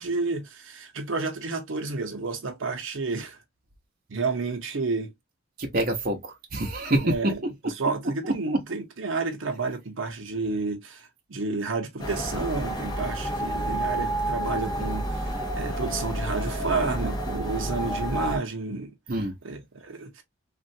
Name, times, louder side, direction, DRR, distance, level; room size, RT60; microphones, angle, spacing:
voice 1, 0.0-3.4 4.1-5.1 7.0-7.4 7.6-18.9 19.4-20.2, right 3 dB, 85° right, 0.8 m, -30 dB
voice 2, 5.6-7.4 8.2-8.6 19.1-19.4, right 1 dB, 45° right, 0.8 m, -26 dB
sound 1, 12.0-18.4, right 1 dB, 20° left, 0.9 m, -29 dB
3.2 x 2.4 x 2.6 m
head